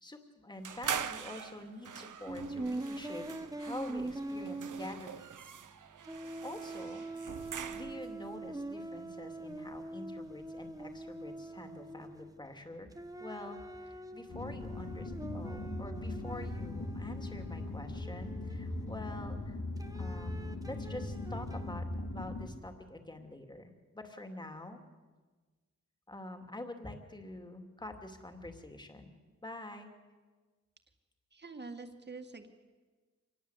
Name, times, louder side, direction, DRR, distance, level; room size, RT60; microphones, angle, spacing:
voice 1, 0.0-3.3 3.6-5.5 6.4-7.1 7.7-12.9 13.2-19.6 19.9-24.8 26.1-29.1 29.4-29.9, left 1 dB, 15° left, 5 dB, 2.6 m, -46 dB
sound 1, 0.6-8.2, right 7 dB, 85° right, 1.2 m, -43 dB
sound 2, 2.3-5.7 6.0-12.5 12.9-19.2 19.8-21.7, right 2 dB, 10° right, 1.3 m, -44 dB
sound 3, 14.3-22.5, left 2 dB, 85° left, 3.5 m, -39 dB
voice 2, 31.3-32.5, right 3 dB, 35° right, 6 dB, 2.1 m, -46 dB
26.5 x 20.5 x 8.2 m, 1.4 s
wide cardioid pair, 135°, 30 cm